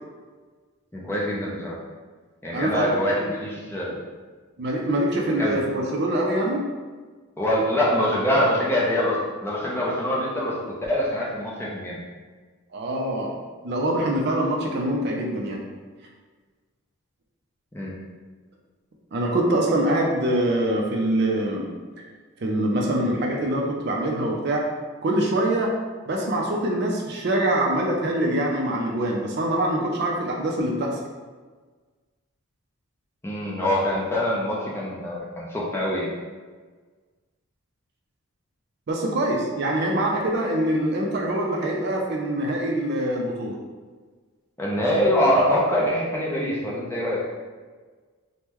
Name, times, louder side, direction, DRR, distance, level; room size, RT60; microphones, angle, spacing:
voice 1, 0.9-1.8 2.4-4.0 5.4-5.8 7.4-10.6 10.9-12.0 17.7-17.9 33.2-36.1 44.6-47.2, equal, 10° left, -5 dB, 0.5 m, -24 dB
voice 2, 2.5-3.3 4.6-6.6 12.7-13.3 13.6-15.6 19.1-21.7 22.4-24.7 25.0-25.7 26.1-30.9 38.9-43.6, right 1 dB, 50° right, 0 dB, 0.4 m, -24 dB
3.5 x 2.1 x 2.9 m, 1.4 s
head